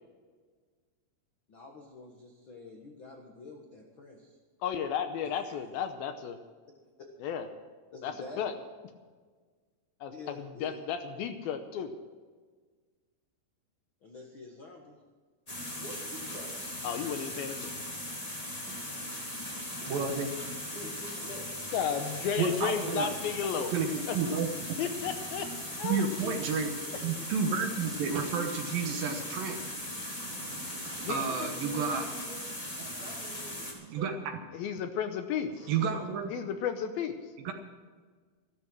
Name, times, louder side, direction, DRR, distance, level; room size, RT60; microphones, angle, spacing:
voice 1, 1.5-4.4 5.2-5.6 7.9-8.5 10.1-10.8 14.0-15.0 26.2-26.4 26.8-27.3 28.8-29.2, left 3 dB, 60° left, 1 dB, 1.3 m, -48 dB
voice 2, 4.6-6.4 7.2-7.5 8.0-8.5 10.0-11.9 16.8-17.7 21.7-23.7 24.1-24.2 24.8-25.5 25.8-26.0 31.0-31.2 34.5-35.7 36.3-37.2, left 8 dB, 75° left, 8 dB, 2.5 m, -33 dB
sound 1, 15.5-33.7, left 1 dB, 10° left, 2.1 m, -39 dB
voice 3, 15.7-16.5 20.7-22.4 31.0-32.4 32.9-34.2 35.4-36.1, right 1 dB, 25° right, -1 dB, 2.4 m, -46 dB
voice 4, 19.9-20.3 22.4-23.1 23.7-24.8 25.8-26.7 27.0-29.6 29.8-29.9 30.2-32.1 32.8-32.9 33.9-34.1 35.7-36.3 37.4-37.5, right 5 dB, 65° right, 5 dB, 2.7 m, -31 dB
14.0 x 13.5 x 6.2 m, 1.5 s
omnidirectional pair, 4.7 m